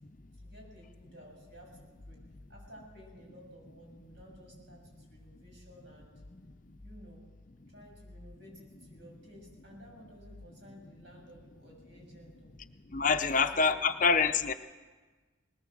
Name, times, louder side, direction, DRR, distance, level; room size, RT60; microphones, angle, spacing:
voice 1, 0.4-2.2 2.5-6.1 6.8-7.3 7.7-12.5 13.0-13.7, equal, 60° right, -1 dB, 6.8 m, -54 dB
voice 2, 12.9-14.5, left 5 dB, 40° left, 8 dB, 0.7 m, -26 dB
19.5 x 18.5 x 7.4 m, 1.3 s
head